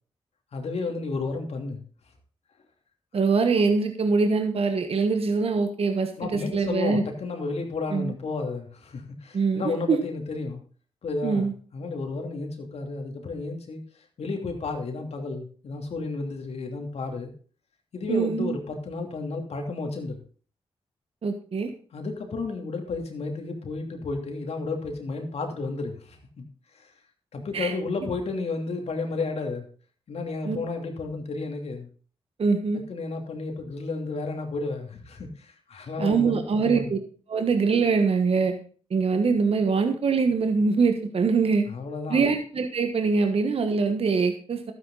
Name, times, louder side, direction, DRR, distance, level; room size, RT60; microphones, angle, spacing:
voice 1, 0.5-1.8 6.2-10.6 11.0-13.8 14.2-17.3 17.9-20.2 21.9-26.5 26.7-26.9 27.3-29.7 30.1-31.9 32.9-36.9 41.7-42.2, left 3 dB, 70° left, 3 dB, 2.9 m, -32 dB
voice 2, 3.1-7.0 7.9-8.1 9.3-10.0 11.2-11.5 18.1-18.6 21.2-21.7 27.5-27.7 30.4-30.6 32.4-32.8 36.0-37.0 37.3-38.5 38.9-41.6 42.1-44.7, right 4 dB, 65° right, 6 dB, 1.4 m, -23 dB
12.5 x 9.6 x 4.1 m, 0.42 s
cardioid pair, 60°, 11 cm